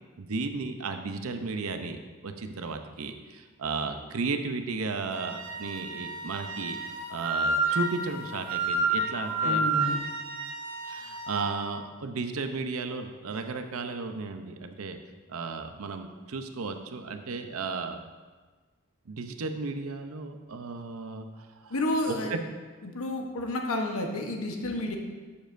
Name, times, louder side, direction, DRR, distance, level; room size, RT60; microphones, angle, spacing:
voice 1, 0.2-6.8 7.1-9.6 10.8-15.0 15.3-18.0 19.1-21.7 22.1-22.4, right 4 dB, 85° right, 7 dB, 0.7 m, -34 dB
Wind instrument woodwind instrument, 5.1-11.5, right 2 dB, 65° right, 1.4 m, -30 dB
voice 2, 9.4-10.0 21.7-22.3 22.8-25.0, left 1 dB, 85° left, 2 dB, 1.0 m, -30 dB
11.5 x 7.1 x 2.6 m, 1.4 s
head